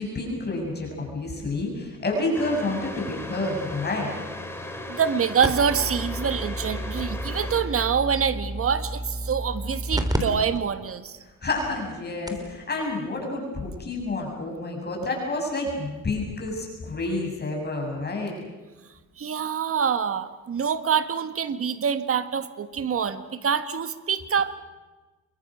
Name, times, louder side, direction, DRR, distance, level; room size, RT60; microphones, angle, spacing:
voice 1, 0.0-4.1 11.4-18.3, left 2 dB, 35° left, 0 dB, 7.4 m, -29 dB
sound 1, 2.3-7.6, left 1 dB, 10° left, 4.1 m, -37 dB
voice 2, 4.9-11.2 19.2-24.6, right 7 dB, 50° right, 11 dB, 1.6 m, -26 dB
sound 2, 5.4-10.2 10.5-10.6 11.3-11.4 11.9-12.0 12.3-12.5 13.8-13.9, right 1 dB, 10° right, 3.4 m, -31 dB
28.0 x 23.5 x 6.4 m, 1.2 s
cardioid pair, 90°, 30 cm